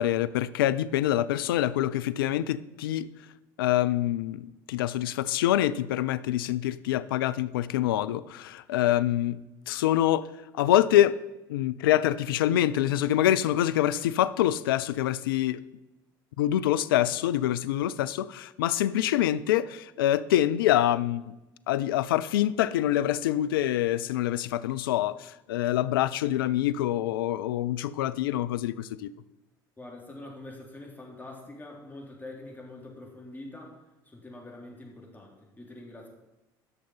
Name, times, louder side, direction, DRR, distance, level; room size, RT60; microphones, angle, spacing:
voice 1, 0.0-3.1 3.6-10.3 10.5-11.2 11.5-15.6 16.4-21.3 21.7-29.1, left 12 dB, 80° left, 16 dB, 0.4 m, -25 dB
voice 2, 29.8-36.1, left 2 dB, 15° left, -1 dB, 3.5 m, -45 dB
10.5 x 6.5 x 5.6 m, 1.0 s
hypercardioid pair, 70°, 12 cm